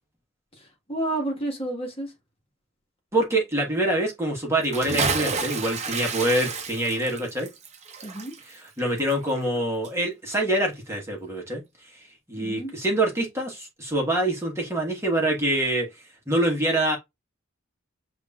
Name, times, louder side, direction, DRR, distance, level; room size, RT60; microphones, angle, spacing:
voice 1, 0.6-2.1 8.0-8.3 12.4-12.7, right 1 dB, 30° left, 1.5 m, -30 dB
voice 2, 3.1-7.5 8.4-11.6 11.9-12.0 12.3-15.9 16.3-17.0, right 1 dB, 15° right, 1.4 m, -25 dB
Bathtub (filling or washing) / Splash splatter, 4.6-9.6 9.8-9.9, right 4 dB, 35° right, 0.8 m, -30 dB
7.8 x 2.6 x 2.4 m
head